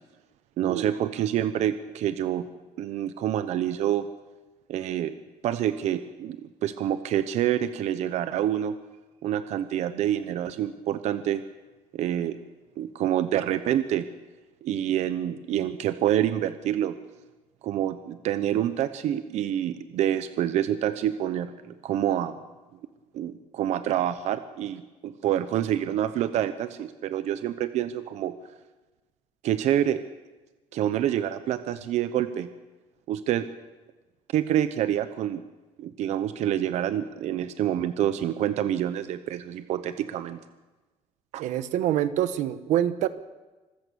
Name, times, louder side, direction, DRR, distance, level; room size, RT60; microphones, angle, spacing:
voice 1, 0.6-2.5 2.8-4.1 4.7-5.2 5.4-8.8 9.2-11.4 11.9-12.4 12.8-14.1 14.6-17.0 17.6-22.4 23.1-28.3 29.4-30.0 30.7-32.5 33.1-33.5 34.3-35.4 35.8-40.4 41.3-41.4, right 11 dB, 65° right, 11 dB, 0.9 m, -27 dB
voice 2, 41.4-43.1, right 11 dB, 85° right, 12 dB, 1.1 m, -26 dB
25.5 x 14.5 x 7.0 m, 1.2 s
cardioid pair, 165°, 12 cm